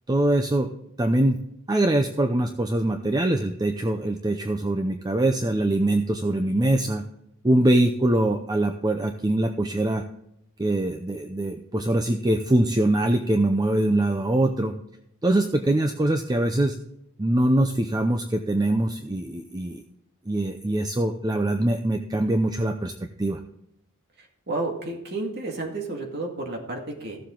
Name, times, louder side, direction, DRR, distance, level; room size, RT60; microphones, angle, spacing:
voice 1, 0.1-0.7 1.0-1.4 1.7-7.0 7.4-10.0 10.6-14.8 15.2-16.8 17.2-19.8 20.3-22.9 23.2-23.4, right 1 dB, 20° right, 6 dB, 0.6 m, -23 dB
voice 2, 24.2-27.2, right 2 dB, 50° right, 0 dB, 2.1 m, -31 dB
15.0 x 7.4 x 3.8 m, 0.78 s
head